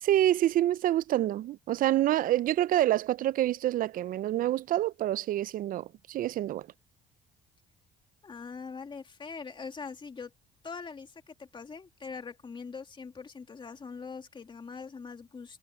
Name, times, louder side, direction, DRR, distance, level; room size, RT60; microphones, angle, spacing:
voice 1, 0.0-6.7, right 13 dB, 55° right, 0.5 m, -27 dB
voice 2, 8.2-10.3 10.6-15.6, left 5 dB, 30° left, 2.5 m, -42 dB
cardioid pair, 110°, 17 cm